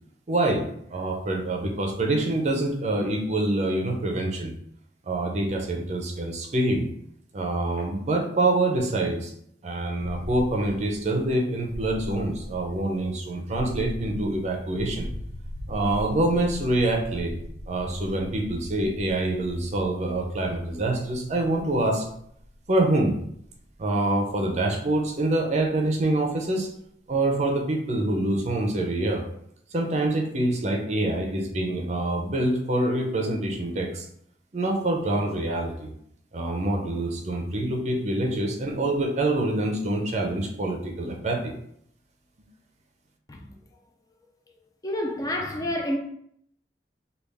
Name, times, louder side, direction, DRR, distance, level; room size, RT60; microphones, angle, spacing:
voice 1, 0.3-4.5 5.1-6.9 7.3-9.3 9.6-15.1 15.7-17.3 17.7-22.1 22.7-23.2 23.8-26.7 27.1-29.2 29.7-34.1 34.5-35.9 36.3-41.5, right 2 dB, 40° right, 0.5 m, -26 dB
sound 1, 10.0-25.9, equal, 80° left, 0.5 m, -40 dB
voice 2, 44.8-46.0, left 1 dB, 20° left, 0.4 m, -28 dB
3.3 x 2.3 x 3.4 m
head